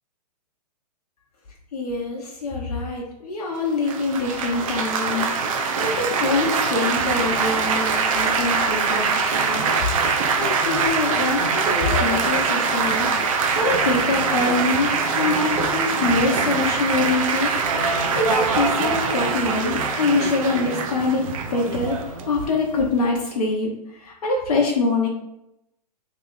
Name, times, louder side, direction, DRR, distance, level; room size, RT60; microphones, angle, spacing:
voice 1, 1.7-9.6 10.2-13.1 13.6-17.5 17.8-25.1, left 3 dB, 65° left, -1 dB, 0.9 m, -25 dB
Laughter / Applause / Chatter, 3.9-23.0, right 5 dB, 55° right, 0.6 m, -23 dB
3.2 x 2.9 x 3.8 m, 0.86 s
figure-of-eight pair, 115°, 21 cm